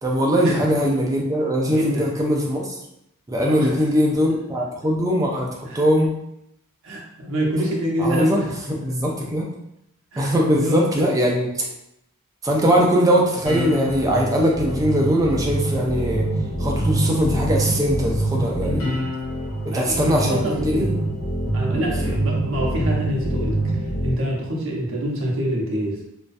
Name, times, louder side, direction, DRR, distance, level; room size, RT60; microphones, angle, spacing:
voice 1, 0.0-2.8 3.3-6.1 8.0-8.4 8.7-9.4 10.2-11.6 12.4-16.3 16.6-19.0 19.7-21.0 21.7-22.1, equal, 15° right, -1 dB, 0.3 m, -21 dB
voice 2, 1.7-2.1 3.3-3.9 5.7-5.8 6.8-8.9 10.1-11.1 18.6-18.9 19.6-20.9 21.5-26.1, right 1 dB, 60° right, -2 dB, 0.6 m, -26 dB
sound 1, 13.4-24.1, right 1 dB, 65° left, 0.8 m, -25 dB
2.3 x 2.1 x 2.5 m, 0.81 s
head